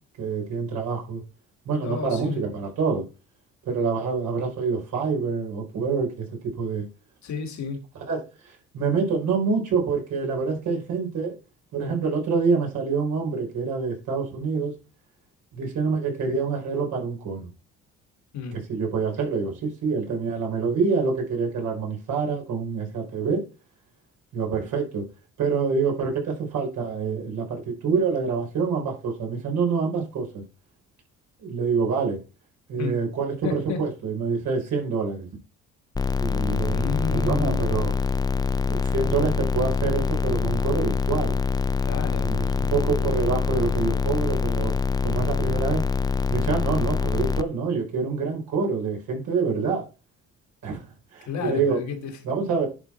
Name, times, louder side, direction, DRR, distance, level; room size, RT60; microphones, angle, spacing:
voice 1, 0.2-1.2 1.6-3.0 3.6-6.9 8.1-11.4 11.7-14.7 15.5-17.4 18.7-23.4 24.3-25.1 25.4-30.4 31.4-32.2 32.7-35.3 36.2-37.9 38.7-41.4 42.1-44.7 45.0-45.8 46.3-49.8 50.6-50.8 51.1-51.8 52.2-52.7, right 5 dB, 80° right, 4.2 m, -26 dB
voice 2, 1.8-2.4 7.2-7.8 18.3-18.6 32.8-33.0 33.4-33.8 36.7-37.7 41.8-42.3 51.3-52.2, left 6 dB, 65° left, 1.9 m, -31 dB
sound 1, 36.0-47.4, left 5 dB, 15° left, 0.4 m, -25 dB
11.0 x 4.4 x 4.3 m
cardioid pair, 90°, 30 cm